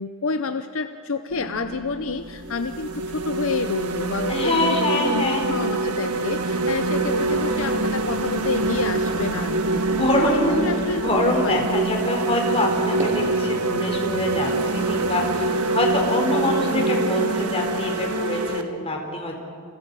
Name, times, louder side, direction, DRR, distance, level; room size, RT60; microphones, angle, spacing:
voice 1, 0.0-9.8 10.1-11.1 11.4-11.6, left 4 dB, 60° left, 9 dB, 0.7 m, -29 dB
sound 1, 1.3-15.9, equal, 55° right, 3.9 m, -41 dB
sound 2, 1.7-1.9 2.4-18.6, right 2 dB, 80° right, 1.7 m, -25 dB
voice 2, 4.3-5.5 9.9-10.6 10.9-19.4, left 1 dB, 25° left, 1 dB, 4.4 m, -24 dB
sound 3, 7.1-9.3 9.7-13.5, right 1 dB, 35° right, 5.3 m, -40 dB
29.5 x 28.5 x 5.5 m, 2.4 s
head